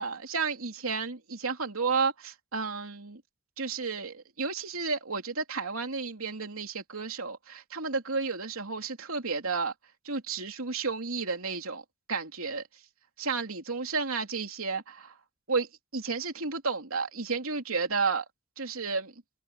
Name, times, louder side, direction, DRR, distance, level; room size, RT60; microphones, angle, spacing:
voice 1, 0.0-3.2 3.6-9.7 10.0-12.6 13.2-15.2 15.5-18.3 18.6-19.1, right 4 dB, 85° right, 3.0 m, -32 dB
head